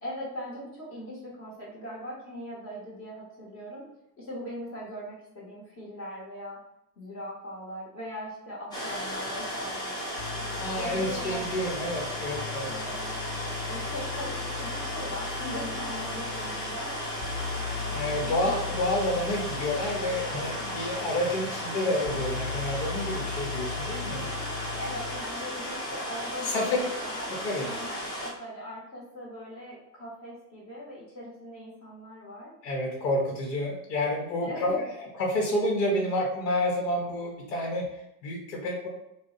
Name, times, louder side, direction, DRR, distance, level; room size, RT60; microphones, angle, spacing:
voice 1, 0.0-3.8 4.2-6.6 7.0-10.2 10.7-11.6 12.6-13.0 13.7-17.1 18.2-18.5 24.8-27.3 27.6-32.5 34.4-34.8, equal, 35° left, -5 dB, 1.0 m, -40 dB
sound 1, 8.7-28.3, equal, 10° left, 0.4 m, -35 dB
sound 2, 10.2-25.2, left 7 dB, 50° left, 1.1 m, -38 dB
voice 2, 10.5-12.7 17.9-24.3 26.4-26.8 27.3-27.7 32.6-38.9, left 1 dB, 80° left, -1 dB, 0.9 m, -29 dB
2.4 x 2.0 x 3.8 m, 0.83 s
supercardioid pair, 125°, 48 cm